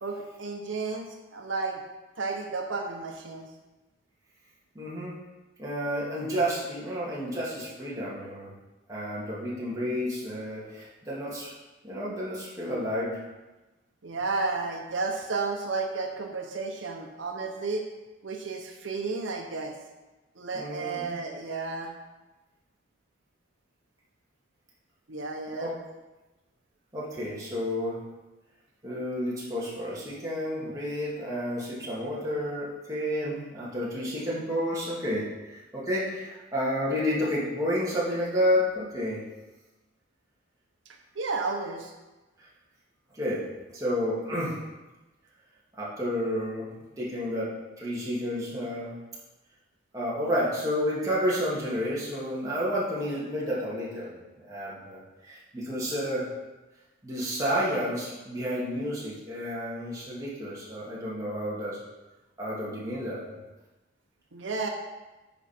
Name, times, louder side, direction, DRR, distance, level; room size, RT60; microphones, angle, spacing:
voice 1, 0.0-1.8 2.2-3.5 14.0-17.9 18.2-19.7 20.4-21.9 25.1-25.7 41.1-41.9 64.3-64.7, right 3 dB, 85° right, 2 dB, 0.9 m, -32 dB
voice 2, 4.7-5.1 5.6-8.5 8.9-11.5 11.8-13.3 20.5-21.1 25.6-25.7 26.9-28.0 28.8-39.2 43.1-43.4 43.7-44.6 45.7-46.7 47.0-47.5 47.8-49.0 49.9-54.2 54.5-56.3 57.0-61.8 62.4-63.2, equal, 15° right, -7 dB, 2.3 m, -30 dB
9.8 x 5.2 x 4.4 m, 1.1 s
head